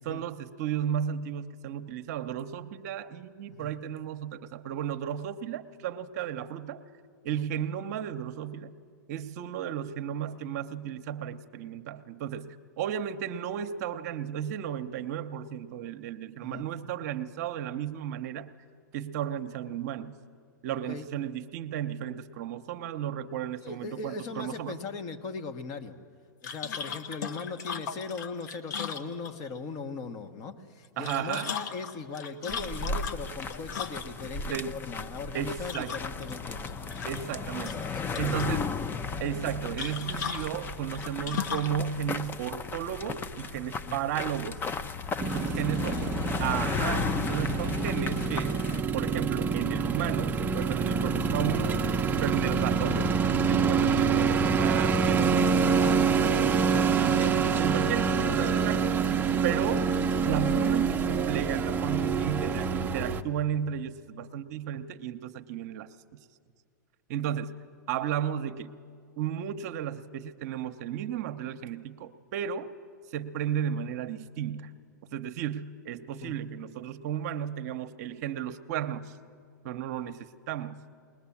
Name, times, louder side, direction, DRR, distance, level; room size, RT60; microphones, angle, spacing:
voice 1, 0.0-6.8 7.2-8.7 9.1-18.5 18.9-20.2 20.6-24.8 31.0-31.5 34.5-34.8 35.3-36.0 37.1-37.9 38.2-38.7 39.2-44.6 45.3-46.0 46.4-48.6 48.9-51.8 52.2-53.0 53.4-55.3 56.2-56.4 56.9-58.9 59.4-59.9 60.2-65.9 67.1-68.7 69.2-72.7 73.1-74.7 75.1-79.1 79.6-80.9, right 9 dB, 55° right, 9 dB, 0.8 m, -34 dB
voice 2, 23.6-26.0 26.4-36.8 37.9-38.6 43.8-44.0 45.4-46.3 47.4-47.6 52.1-52.3 55.2-56.1 56.5-57.3 58.1-58.4 76.2-76.4, left 4 dB, 40° left, 5 dB, 1.4 m, -39 dB
sound 1, 26.4-29.6 30.8-34.3 35.6-36.3 36.7-37.4 37.6-38.5 39.8-41.8, left 7 dB, 65° left, 1.2 m, -37 dB
sound 2, 32.5-48.8, left 5 dB, 20° left, 0.6 m, -35 dB
sound 3, 45.2-63.2, right 5 dB, 15° right, 0.7 m, -26 dB
20.5 x 20.0 x 7.2 m, 2.2 s
hypercardioid pair, 115°, 10 cm